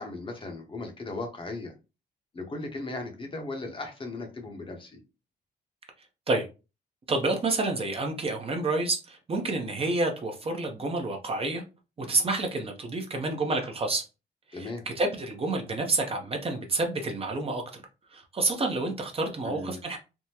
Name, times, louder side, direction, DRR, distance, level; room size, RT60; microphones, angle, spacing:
voice 1, 0.0-1.7 2.3-5.0 14.5-14.8 19.4-19.8, left 2 dB, 30° left, 0.8 m, -37 dB
voice 2, 7.1-11.6 12.0-14.0 14.5-17.8 18.1-20.0, right 2 dB, 30° right, 0.7 m, -29 dB
3.5 x 2.0 x 2.8 m
cardioid pair, 110°, 18 cm